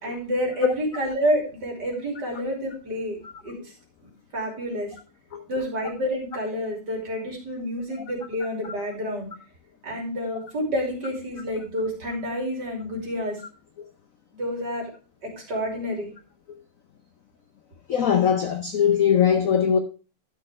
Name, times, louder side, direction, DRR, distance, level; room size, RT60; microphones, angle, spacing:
voice 1, 0.0-3.5 4.3-4.9 5.5-9.3 9.8-13.4 14.3-14.9 15.2-16.1, equal, 50° right, 3.6 m, -29 dB
voice 2, 17.9-19.8, left 8 dB, 75° left, 0.7 m, -20 dB
12.0 x 6.5 x 3.4 m
omnidirectional pair, 2.4 m